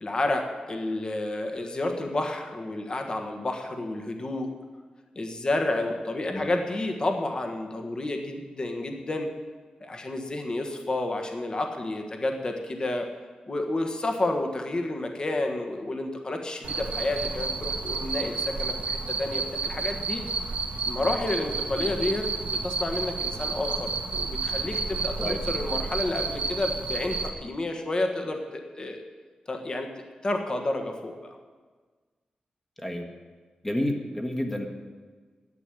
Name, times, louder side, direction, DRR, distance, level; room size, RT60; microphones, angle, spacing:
voice 1, 0.0-4.5 5.1-9.3 9.8-13.1 13.5-20.2 20.9-29.0 29.5-29.9 30.2-31.4, left 2 dB, 35° left, 4 dB, 1.4 m, -30 dB
Cricket, 16.6-27.3, right 4 dB, 65° right, 1.6 m, -31 dB
voice 2, 33.6-34.7, left 1 dB, 10° left, 3 dB, 1.4 m, -30 dB
11.0 x 8.4 x 9.9 m, 1.4 s
wide cardioid pair, 155°, 3 cm